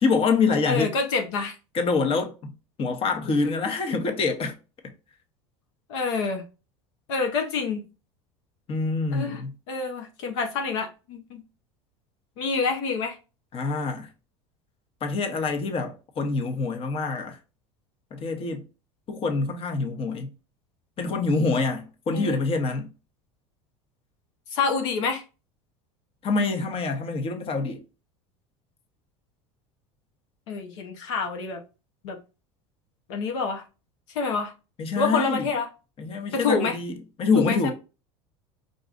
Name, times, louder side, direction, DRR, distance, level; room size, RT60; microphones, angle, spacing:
voice 1, 0.0-0.9 1.7-2.5 2.8-4.5 8.7-9.5 13.5-14.1 15.0-17.4 18.1-18.6 19.1-20.3 21.0-22.9 26.2-27.8 34.8-35.5 36.0-37.7, left 4 dB, 40° left, 1.1 m, -26 dB
voice 2, 0.7-1.6 5.9-6.4 7.1-7.8 9.1-9.4 9.7-11.4 12.4-13.2 22.1-22.4 24.5-25.2 30.5-31.6 32.0-32.2 33.1-33.6 34.1-34.5 35.0-35.7 36.3-36.8 37.4-37.7, left 4 dB, 75° left, 0.9 m, -27 dB
4.7 x 3.9 x 2.5 m
hypercardioid pair, 95°, 15 cm